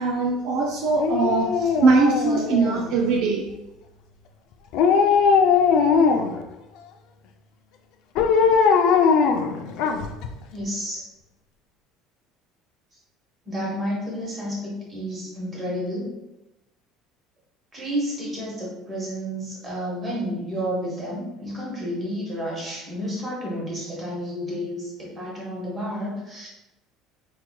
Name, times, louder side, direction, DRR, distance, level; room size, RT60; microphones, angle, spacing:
voice 1, 0.0-3.5, right 4 dB, 55° right, 1 dB, 0.3 m, -21 dB
Dog, 1.0-3.0 4.7-6.4 8.2-10.3 10.6-10.7, left 6 dB, 55° left, 0.3 m, -20 dB
voice 2, 10.5-11.0 13.5-16.1 17.7-26.5, equal, 20° right, -4 dB, 1.1 m, -30 dB
4.6 x 2.9 x 2.2 m, 0.96 s
cardioid pair, 175°, 0 cm